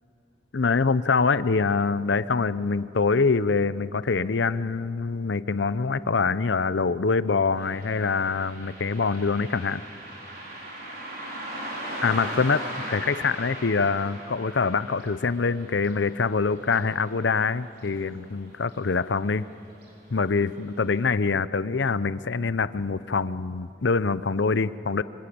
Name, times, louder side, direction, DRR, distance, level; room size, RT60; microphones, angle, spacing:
voice 1, 0.5-9.8 12.0-19.5 20.1-25.0, left 4 dB, 70° left, 15 dB, 0.7 m, -25 dB
Car passing by, 7.6-18.4 18.7-18.8 19.7-19.9 20.4-20.5 21.0-21.1, right 1 dB, 55° right, 5.4 m, -39 dB
26.5 x 25.0 x 8.6 m, 2.7 s
head